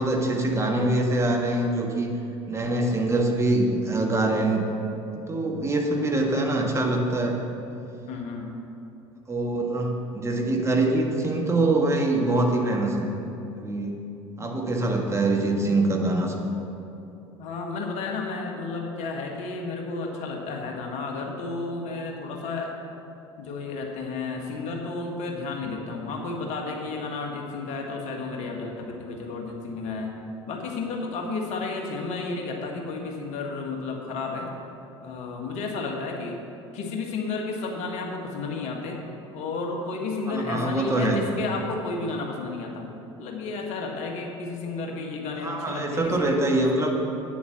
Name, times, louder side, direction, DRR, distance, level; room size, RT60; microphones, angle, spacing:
voice 1, 0.0-2.1 2.5-4.6 5.1-7.4 9.3-13.1 13.5-14.0 14.4-16.4 40.3-41.2 45.4-47.0, right 2 dB, 20° right, 1 dB, 1.6 m, -24 dB
voice 2, 8.1-8.6 17.4-22.7 23.4-30.1 30.5-34.5 35.0-36.4 36.7-39.0 39.3-42.9 43.2-46.7, left 3 dB, 50° left, 1 dB, 1.7 m, -32 dB
8.8 x 7.2 x 7.1 m, 2.8 s
figure-of-eight pair, 65°, 15 cm